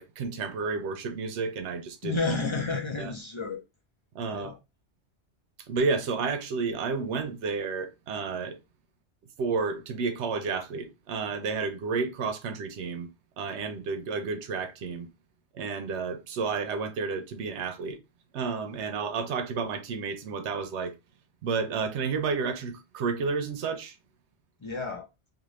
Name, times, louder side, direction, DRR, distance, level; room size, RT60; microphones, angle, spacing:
voice 1, 0.0-2.2 3.0-3.1 4.1-4.5 5.7-8.6 9.4-13.1 13.4-15.1 15.5-18.0 18.3-20.9 21.4-24.0, right 4 dB, 90° right, 0.9 m, -31 dB
voice 2, 2.0-3.6 4.3-4.6 24.6-25.1, left 3 dB, 35° left, 0.5 m, -31 dB
2.5 x 2.5 x 3.1 m
omnidirectional pair, 1.1 m